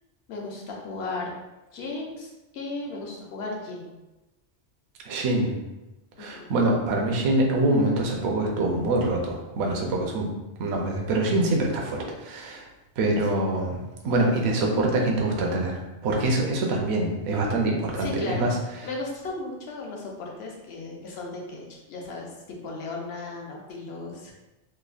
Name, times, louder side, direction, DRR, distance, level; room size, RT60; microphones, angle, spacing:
voice 1, 0.3-1.3 1.7-3.9 6.2-6.5 13.3-13.5 18.0-18.5 18.8-24.3, left 3 dB, 70° left, -1 dB, 0.8 m, -35 dB
voice 2, 5.0-5.5 6.2-10.3 10.6-12.6 13.0-13.8 14.0-18.6, right 2 dB, 70° right, 0 dB, 0.8 m, -25 dB
3.2 x 2.1 x 2.3 m, 1.0 s
omnidirectional pair, 1.2 m